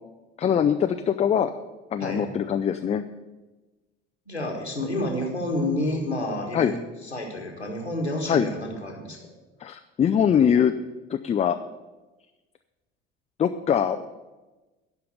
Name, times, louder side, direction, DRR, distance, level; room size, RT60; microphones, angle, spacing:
voice 1, 0.4-1.5 1.9-3.0 6.5-6.7 8.3-8.5 9.6-10.7 11.1-11.6 13.4-14.1, left 8 dB, 20° left, 8 dB, 0.5 m, -22 dB
voice 2, 4.3-9.3, left 1 dB, 90° left, 1 dB, 1.6 m, -29 dB
11.5 x 5.8 x 8.1 m, 1.1 s
figure-of-eight pair, 60°, 32 cm